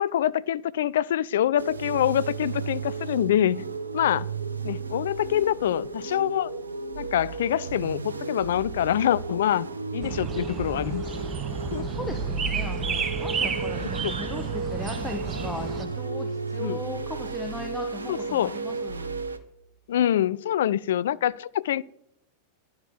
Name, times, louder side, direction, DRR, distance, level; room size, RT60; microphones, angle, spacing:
voice 1, 0.0-3.6 3.9-4.3 4.6-6.5 7.0-9.7 9.9-11.0 11.7-11.9 14.0-14.1 16.6-16.8 18.1-18.6 19.9-21.8, left 11 dB, 60° left, 0.4 m, -25 dB
sound 1, 1.6-19.4, right 4 dB, 75° right, 1.0 m, -33 dB
sound 2, 10.0-15.9, right 5 dB, 25° right, 1.3 m, -32 dB
voice 2, 11.8-19.2, left 2 dB, 5° left, 1.5 m, -38 dB
11.0 x 9.5 x 7.3 m
figure-of-eight pair, 90°, 0 cm